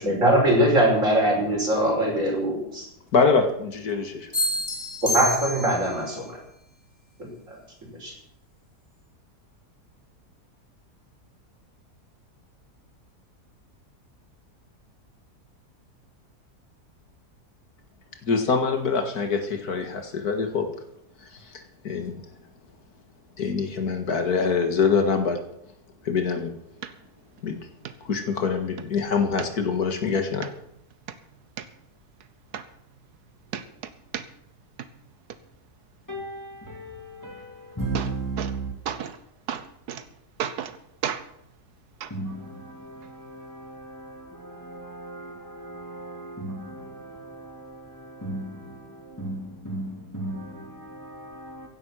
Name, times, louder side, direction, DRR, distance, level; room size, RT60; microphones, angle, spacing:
voice 1, 0.0-2.8 5.0-6.4 7.2-7.3 8.0-8.1, right 1 dB, 50° right, 6.1 m, -22 dB
voice 2, 3.1-4.3 18.3-20.7 21.5-22.2 23.4-25.4 26.1-26.5 27.4-27.6 28.0-30.5, left 5 dB, 70° left, 2.2 m, -24 dB
sound 1, 4.3-6.0, left 1 dB, 35° left, 5.4 m, -27 dB
sound 2, 26.8-26.9 27.4-27.5 27.9-28.0 28.4-28.9 29.4-30.0 30.4-30.5 30.9-31.7 32.2-32.3 32.5-33.2 33.5-34.5 34.8-35.4 37.4-37.5 37.7-38.6 38.9-39.2 39.5-40.0 40.4-40.8 41.0-41.3 42.0-42.1 43.0-43.1, right 8 dB, 85° right, 1.5 m, -33 dB
voice 3, 36.1-38.7 42.1-51.7, right 2 dB, 10° left, 2.0 m, -36 dB
16.5 x 11.0 x 6.3 m
omnidirectional pair, 1.7 m